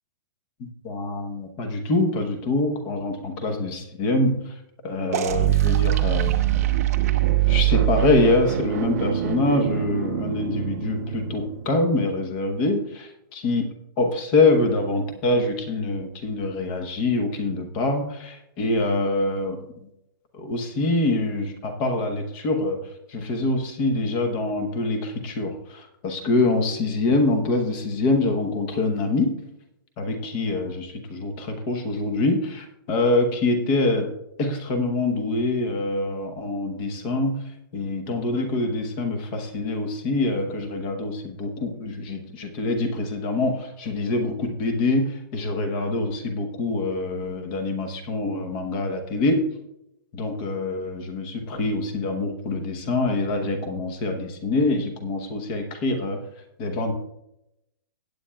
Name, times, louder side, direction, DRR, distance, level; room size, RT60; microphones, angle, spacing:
voice 1, 0.6-4.5 4.8-6.3 7.5-13.7 14.0-19.9 20.3-22.8 23.1-29.3 30.0-34.1 34.4-37.4 37.7-49.4 50.1-56.2 56.6-56.9, left 2 dB, 20° left, 6 dB, 0.9 m, -25 dB
sound 1, 5.1-11.7, right 13 dB, 40° right, 0.6 m, -23 dB
17.5 x 8.5 x 2.3 m, 0.86 s
hypercardioid pair, 180°, 12 cm